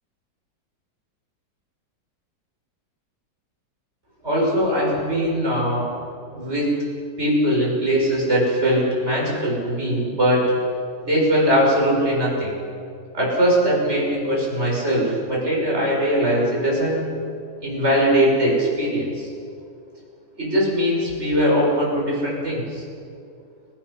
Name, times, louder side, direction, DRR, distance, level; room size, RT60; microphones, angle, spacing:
voice 1, 4.2-5.9 6.3-6.7 7.2-10.5 11.0-12.5 13.1-17.1 17.6-19.3 20.4-22.8, equal, 35° right, -4 dB, 7.1 m, -21 dB
29.5 x 18.5 x 5.8 m, 2.4 s
omnidirectional pair, 1.9 m